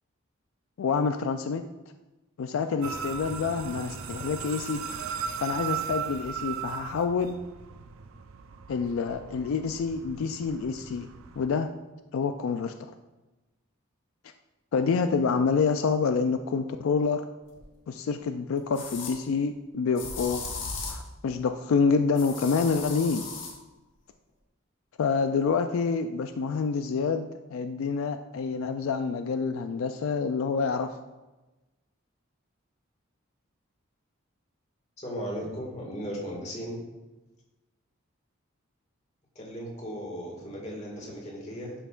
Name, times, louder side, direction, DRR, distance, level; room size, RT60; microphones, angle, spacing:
voice 1, 0.8-1.6 2.4-4.8 5.4-7.4 8.7-11.1 11.4-11.7 12.1-12.7 14.7-17.2 17.9-20.4 20.9-23.2 25.0-31.0, left 5 dB, 80° left, 8 dB, 0.4 m, -27 dB
sound 1, 2.8-11.5, right 7 dB, 85° right, 0.5 m, -37 dB
sound 2, 17.6-17.7 18.7-19.2 20.0-21.1 22.2-23.6, left 4 dB, 65° left, 1.3 m, -37 dB
voice 2, 35.0-36.8 39.4-41.7, equal, 35° left, -2 dB, 2.0 m, -36 dB
11.0 x 5.6 x 2.5 m, 1.1 s
head